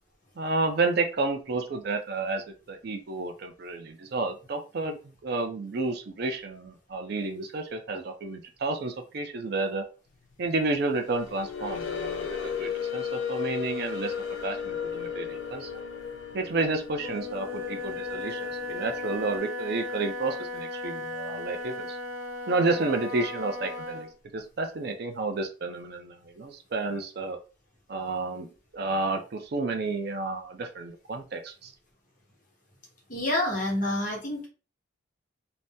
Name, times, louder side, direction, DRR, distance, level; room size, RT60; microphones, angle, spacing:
voice 1, 0.4-9.8 10.4-14.1 14.4-15.7 16.3-22.0 22.5-24.1 24.3-27.4 27.9-31.7, right 3 dB, 50° right, 5 dB, 0.4 m, -31 dB
sound 1, 11.0-19.4, left 7 dB, 75° left, 0.5 m, -35 dB
Wind instrument woodwind instrument, 16.9-24.1, left 2 dB, 85° right, 1.0 m, -36 dB
voice 2, 33.1-34.5, left 1 dB, 40° left, -1 dB, 1.0 m, -28 dB
2.6 x 2.0 x 3.4 m, 0.34 s
head